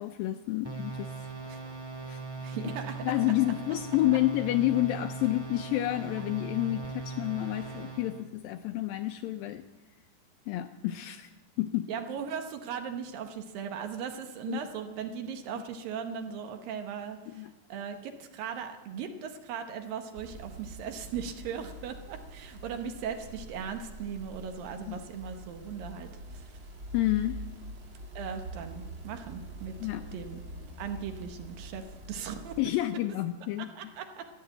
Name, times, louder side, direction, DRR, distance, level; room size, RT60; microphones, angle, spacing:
voice 1, 0.0-1.3 2.1-2.2 2.5-2.7 3.0-9.6 10.5-11.3 11.6-11.9 14.5-14.6 17.3-17.5 24.9-25.0 26.9-27.4 29.8-30.0 32.6-33.7, left 15 dB, 80° left, 8 dB, 2.1 m, -29 dB
sound 1, 0.6-8.2, right 4 dB, 10° right, 1.2 m, -39 dB
voice 2, 2.4-3.0 6.2-6.3 7.7-7.8 11.9-26.6 28.2-29.8 30.1-30.4 30.8-32.5 33.6-34.2, right 7 dB, 70° right, 6 dB, 2.5 m, -38 dB
sound 2, 20.1-32.6, right 1 dB, 40° right, 2.0 m, -45 dB
14.0 x 10.5 x 7.7 m, 1.1 s
omnidirectional pair, 4.5 m